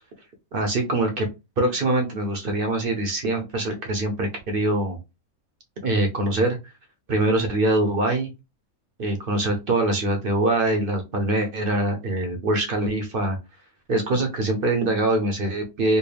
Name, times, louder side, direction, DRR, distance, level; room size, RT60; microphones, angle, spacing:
voice 1, 0.5-1.3 1.6-5.0 5.8-6.6 7.1-8.3 9.0-13.4 13.9-16.0, right 2 dB, 50° right, 4 dB, 0.7 m, -23 dB
4.5 x 2.1 x 3.3 m, 0.25 s
omnidirectional pair, 1.6 m